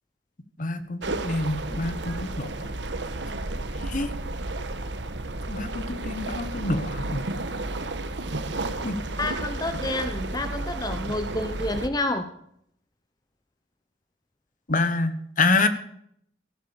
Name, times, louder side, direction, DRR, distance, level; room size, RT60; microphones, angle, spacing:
voice 1, 0.6-2.7 3.7-4.1 5.5-7.2 8.8-9.0 11.1-11.2 14.7-15.7, left 3 dB, 50° left, 11 dB, 1.3 m, -27 dB
sound 1, 1.0-11.9, right 2 dB, 80° right, 1.3 m, -32 dB
voice 2, 9.2-12.3, left 2 dB, 20° left, 8 dB, 0.9 m, -29 dB
15.5 x 11.5 x 5.2 m, 0.68 s
head